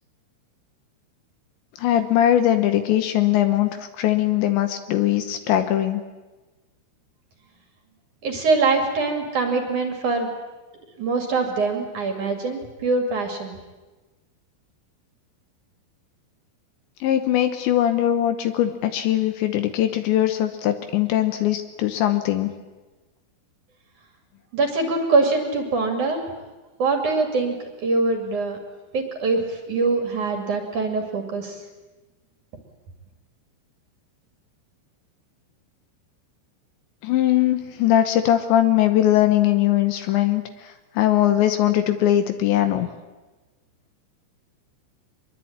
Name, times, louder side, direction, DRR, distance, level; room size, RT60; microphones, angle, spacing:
voice 1, 1.8-6.0 17.0-22.5 37.0-42.9, left 12 dB, 75° left, 8 dB, 3.1 m, -21 dB
voice 2, 8.2-10.3 10.9-13.6 24.5-26.2 26.8-28.6 28.9-31.6, right 3 dB, 45° right, 4 dB, 3.4 m, -23 dB
24.0 x 22.0 x 8.8 m, 1.2 s
omnidirectional pair, 5.8 m